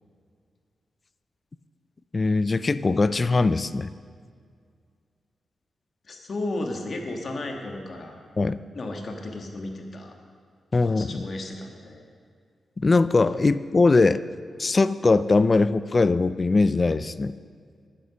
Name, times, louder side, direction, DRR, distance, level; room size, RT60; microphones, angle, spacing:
voice 1, 2.1-3.9 8.4-8.6 10.7-11.3 12.8-14.2 14.6-17.3, left 3 dB, 30° left, 15 dB, 0.4 m, -21 dB
voice 2, 6.0-8.2 8.7-10.1 10.8-12.0, left 2 dB, 45° left, 3 dB, 1.5 m, -34 dB
11.0 x 9.7 x 6.4 m, 2.1 s
wide cardioid pair, 120°, 0 cm